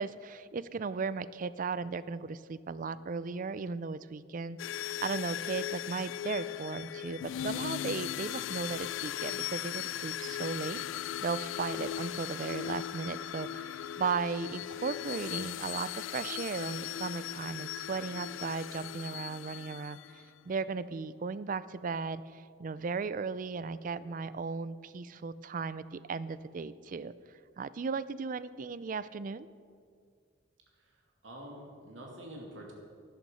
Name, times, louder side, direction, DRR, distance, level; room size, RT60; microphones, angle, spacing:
voice 1, 0.0-27.1 27.6-29.5, right 4 dB, 45° right, 16 dB, 0.4 m, -36 dB
sound 1, 4.6-20.2, left 12 dB, 85° left, 0.3 m, -38 dB
voice 2, 30.8-32.7, right 1 dB, 90° right, -1 dB, 2.6 m, -47 dB
12.5 x 11.0 x 5.5 m, 2.2 s
head